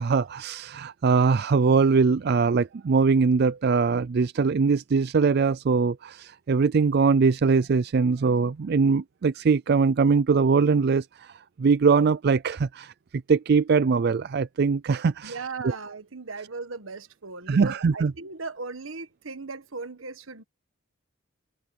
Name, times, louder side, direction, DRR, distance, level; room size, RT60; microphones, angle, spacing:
voice 1, 0.0-11.3 11.6-15.8 17.5-18.1, right 5 dB, 50° right, 0.4 m, -22 dB
voice 2, 15.2-20.4, right 4 dB, 85° right, 1.5 m, -37 dB
head